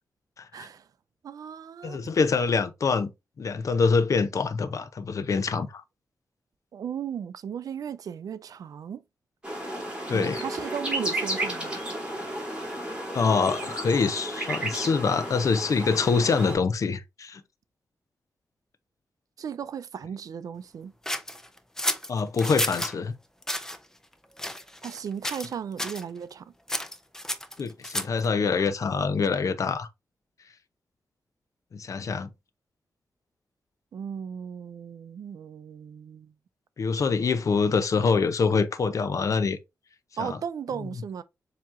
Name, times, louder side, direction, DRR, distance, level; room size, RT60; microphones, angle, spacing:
voice 1, 0.5-0.9 1.2-2.0 6.7-9.0 10.1-11.8 19.4-20.9 24.8-26.5 33.9-36.3 40.2-41.2, right 8 dB, 80° right, 0.4 m, -36 dB
voice 2, 1.8-3.1 3.4-5.8 10.1-10.4 13.1-17.4 22.1-23.2 27.6-29.9 31.7-32.3 36.8-39.6 40.2-40.4, left 5 dB, 60° left, 0.6 m, -25 dB
sound 1, 9.4-16.6, right 1 dB, 15° right, 2.6 m, -33 dB
sound 2, 21.0-22.9 23.4-23.8 24.4-25.0 25.2-25.5 25.8-26.0 26.7-28.3, left 1 dB, 10° left, 0.6 m, -31 dB
7.3 x 2.9 x 2.5 m
cardioid pair, 75°, 6 cm